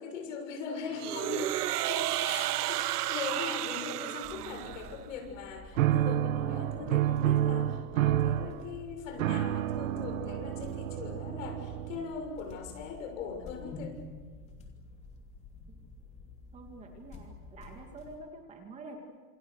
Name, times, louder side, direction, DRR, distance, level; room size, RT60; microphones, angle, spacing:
voice 1, 0.0-14.0, left 5 dB, 55° left, 4 dB, 6.7 m, -40 dB
sound 1, 1.0-5.0, right 16 dB, 80° right, 0.7 m, -32 dB
sound 2, 4.2-18.2, left 3 dB, 15° left, 3.0 m, -50 dB
sound 3, 5.8-12.2, right 12 dB, 60° right, 1.2 m, -29 dB
voice 2, 16.5-19.0, right 2 dB, 15° right, 3 dB, 2.3 m, -47 dB
29.5 x 27.5 x 6.5 m, 1.5 s
supercardioid pair, 160°, 46 cm